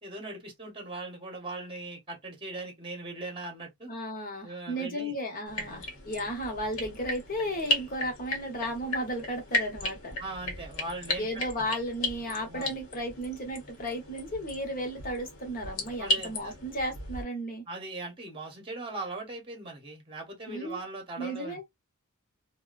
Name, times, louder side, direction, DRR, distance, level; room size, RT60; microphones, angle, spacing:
voice 1, 0.0-3.9 4.4-5.1 5.7-5.8 10.2-11.6 12.5-12.7 16.0-16.5 17.7-21.6, right 2 dB, 25° right, 0.9 m, -40 dB
voice 2, 3.9-10.2 11.2-17.6 20.5-20.8 21.2-21.6, equal, 40° left, 1.0 m, -34 dB
sound 1, 5.5-17.2, left 1 dB, 65° left, 1.0 m, -35 dB
2.6 x 2.2 x 2.4 m
head